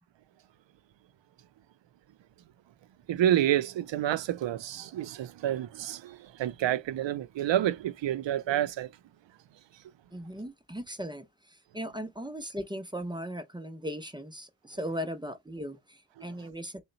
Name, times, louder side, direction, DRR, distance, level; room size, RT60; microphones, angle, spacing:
voice 1, 3.1-8.9, right 12 dB, 70° right, 0.5 m, -29 dB
voice 2, 10.1-16.8, equal, 10° right, 0.5 m, -38 dB
3.9 x 2.2 x 3.9 m
wide cardioid pair, 175°, 45 cm